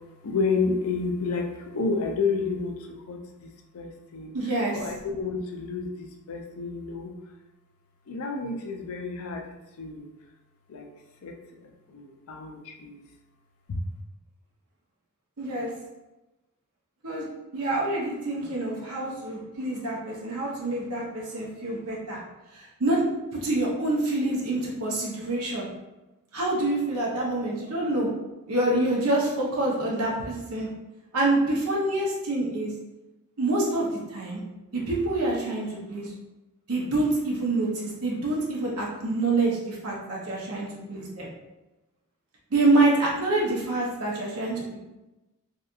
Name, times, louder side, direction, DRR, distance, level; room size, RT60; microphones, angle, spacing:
voice 1, 0.2-4.3 4.7-7.1 8.1-9.4 9.8-10.1 10.7-10.9 11.2-11.3 11.6-13.0, left 4 dB, 70° left, 3 dB, 0.4 m, -30 dB
voice 2, 4.3-4.8 15.4-15.7 17.0-17.3 17.5-22.2 22.5-23.0 23.3-25.7 26.3-28.1 28.5-30.7 31.1-32.7 33.4-34.4 34.7-36.1 36.7-41.3 42.5-44.8, right 2 dB, 75° right, -2 dB, 0.7 m, -26 dB
2.7 x 2.3 x 2.4 m, 1.0 s
head